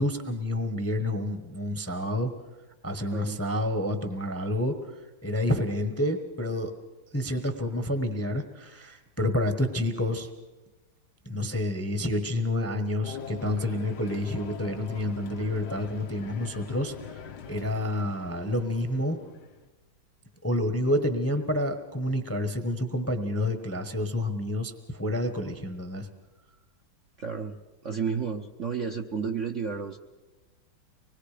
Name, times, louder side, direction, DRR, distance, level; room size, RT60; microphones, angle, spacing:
voice 1, 0.0-2.3 2.8-4.7 5.2-6.7 7.1-10.3 11.2-17.2 17.5-19.2 20.4-26.1, left 1 dB, 10° left, 8 dB, 0.9 m, -29 dB
sound 1, 13.0-19.7, left 7 dB, 60° left, 1.4 m, -42 dB
voice 2, 27.2-27.6 27.8-30.0, right 6 dB, 50° right, 3 dB, 1.0 m, -31 dB
25.0 x 20.5 x 5.0 m, 1.1 s
omnidirectional pair, 2.1 m